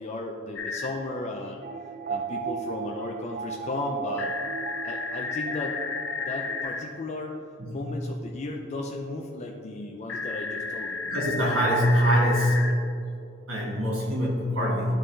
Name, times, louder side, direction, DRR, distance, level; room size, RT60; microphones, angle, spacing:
voice 1, 0.0-1.6 2.1-4.3 4.8-5.8 6.2-7.3 7.7-11.0, left 2 dB, 35° left, 1 dB, 0.4 m, -35 dB
sound 1, 0.6-0.9 4.2-6.8 10.1-12.7, left 4 dB, 70° left, 0.8 m, -32 dB
sound 2, 1.6-6.6, right 5 dB, 45° right, 0.5 m, -36 dB
voice 2, 11.1-12.7 13.5-14.9, equal, 90° right, -4 dB, 1.6 m, -24 dB
11.5 x 3.9 x 3.3 m, 2.5 s
head